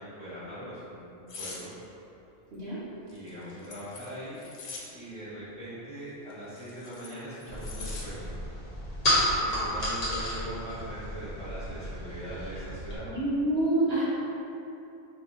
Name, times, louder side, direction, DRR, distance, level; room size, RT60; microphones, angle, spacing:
voice 1, 0.0-1.7 3.1-4.4 4.9-8.3 9.4-13.1, right 1 dB, 5° left, -12 dB, 1.0 m, -41 dB
sound 1, 1.3-1.6 3.1-4.9 6.3-8.1 8.5-8.7, left 4 dB, 85° left, 1.0 m, -43 dB
voice 2, 2.5-2.8 13.1-14.0, right 1 dB, 65° right, -10 dB, 0.8 m, -27 dB
sound 2, 7.5-13.0, equal, 40° left, 0.6 m, -31 dB
2.6 x 2.4 x 3.9 m, 2.8 s
omnidirectional pair, 1.4 m